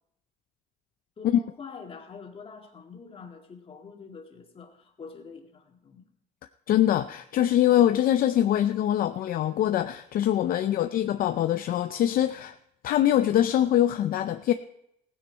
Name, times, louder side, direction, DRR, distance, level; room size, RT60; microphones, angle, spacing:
voice 1, 1.2-6.1, left 5 dB, 35° left, 2 dB, 2.1 m, -45 dB
voice 2, 6.7-12.5 12.8-14.5, left 11 dB, 60° left, 9 dB, 0.5 m, -23 dB
16.0 x 9.5 x 4.5 m, 0.79 s
cardioid pair, 110°, 17 cm